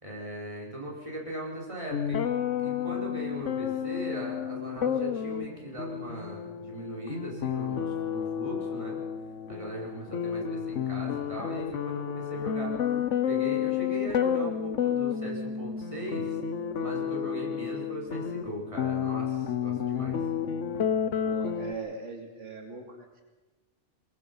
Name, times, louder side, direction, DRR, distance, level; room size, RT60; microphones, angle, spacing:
voice 1, 0.0-2.2 2.6-9.0 9.5-12.9 13.3-16.4 16.8-20.2, equal, 25° right, -3 dB, 5.2 m, -39 dB
sound 1, 1.9-21.7, left 8 dB, 90° left, 1.3 m, -31 dB
voice 2, 21.2-23.2, right 4 dB, 85° right, 3 dB, 3.0 m, -41 dB
23.5 x 21.5 x 5.5 m, 1.2 s
omnidirectional pair, 1.2 m